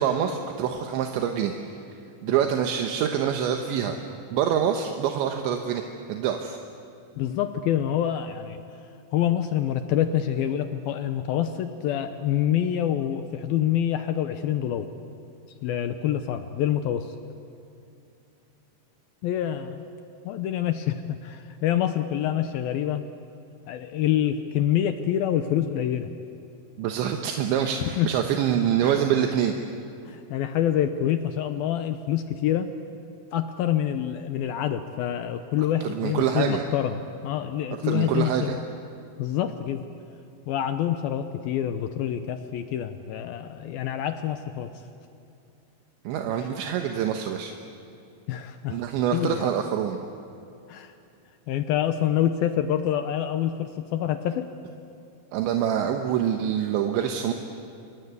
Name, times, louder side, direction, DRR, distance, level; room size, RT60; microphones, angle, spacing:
voice 1, 0.0-1.5 2.2-4.0 4.3-5.8 6.1-6.6 26.8-29.6 35.8-36.6 37.8-38.6 46.0-47.5 48.7-50.0 55.3-57.3, right 9 dB, 75° right, 4 dB, 3.4 m, -25 dB
voice 2, 7.2-8.6 9.1-14.9 15.6-17.2 19.2-19.8 20.2-23.0 23.7-26.2 27.8-28.1 28.8-29.0 30.1-32.7 33.3-38.6 39.2-39.8 40.5-44.7 48.3-48.8 49.1-49.5 50.7-51.0 51.5-54.5, left 10 dB, 80° left, 9 dB, 2.1 m, -26 dB
29.0 x 25.5 x 8.2 m, 2.6 s
omnidirectional pair, 5.4 m